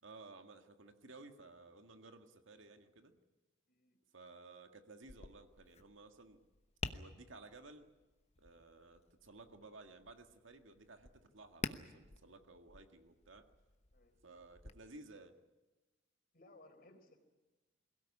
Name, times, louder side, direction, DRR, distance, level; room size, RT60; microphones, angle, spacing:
voice 1, 0.0-3.1 4.1-6.4 6.9-7.9 8.4-13.5 14.2-15.3, right 3 dB, 90° right, 6 dB, 1.9 m, -56 dB
Tap, 5.0-14.7, left 3 dB, 35° left, 1.0 m, -50 dB
voice 2, 16.3-17.2, left 2 dB, 50° left, 5 dB, 4.1 m, -62 dB
22.5 x 17.0 x 9.9 m, 1.2 s
head